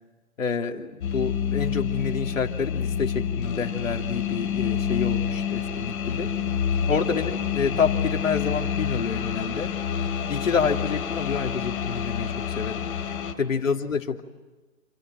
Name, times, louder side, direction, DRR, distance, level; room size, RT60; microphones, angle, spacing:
voice 1, 0.4-6.3 6.9-9.7 10.3-14.3, left 5 dB, 65° left, 4 dB, 3.1 m, -28 dB
sound 1, 1.0-13.3, left 8 dB, 35° left, 3.2 m, -28 dB
28.5 x 27.5 x 7.6 m, 1.2 s
figure-of-eight pair, 145°, 42 cm